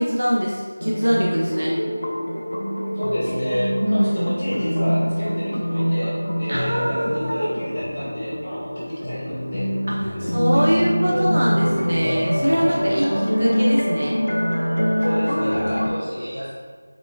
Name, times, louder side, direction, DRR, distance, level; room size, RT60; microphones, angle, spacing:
voice 1, 0.0-1.7 3.8-4.3 6.5-7.5 9.9-14.2, equal, 85° right, -4 dB, 0.7 m, -23 dB
sound 1, 0.8-15.9, equal, 65° left, 0.7 m, -24 dB
voice 2, 2.9-9.6 10.1-10.8 12.9-13.2 15.0-16.5, equal, 15° left, -17 dB, 1.1 m, -30 dB
4.6 x 3.9 x 2.4 m, 1.5 s
figure-of-eight pair, 180°, 0 cm